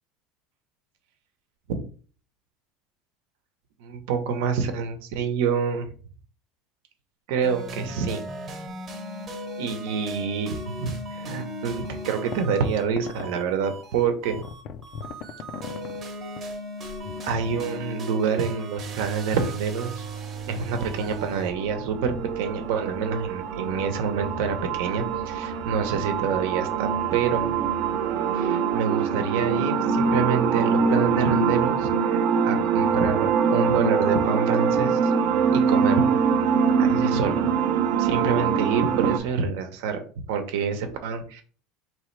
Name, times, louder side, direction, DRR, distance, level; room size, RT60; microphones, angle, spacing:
voice 1, 3.8-5.9 7.3-8.2 9.6-14.4 17.2-20.1 20.5-27.5 28.3-35.1 35.5-36.2 36.8-37.5 38.0-41.4, right 6 dB, 75° right, 7 dB, 0.9 m, -27 dB
sound 1, 7.4-21.5, right 1 dB, 25° right, 0.9 m, -37 dB
sound 2, 12.3-12.4 13.0-13.4 14.0-16.0 16.4-16.6 16.8-17.6, left 7 dB, 45° left, 0.4 m, -38 dB
sound 3, 20.6-39.2, right 6 dB, 50° right, 0.6 m, -24 dB
4.4 x 3.2 x 3.2 m, 0.41 s
cardioid pair, 175°, 0 cm